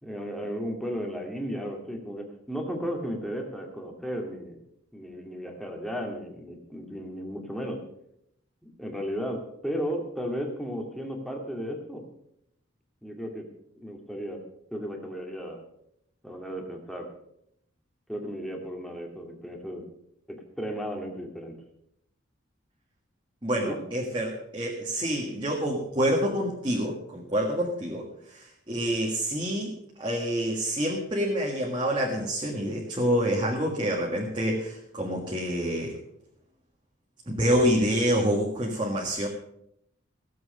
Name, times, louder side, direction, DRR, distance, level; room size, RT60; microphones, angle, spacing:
voice 1, 0.0-4.6 4.9-7.8 8.6-12.0 13.0-13.4 13.7-14.4 14.7-15.6 16.2-17.1 18.1-19.8 20.3-21.5 23.6-23.8, equal, ahead, 1 dB, 2.1 m, -34 dB
voice 2, 23.4-29.7 30.0-36.0 37.3-39.3, equal, 25° right, -2 dB, 1.7 m, -27 dB
16.5 x 7.7 x 6.6 m, 0.75 s
head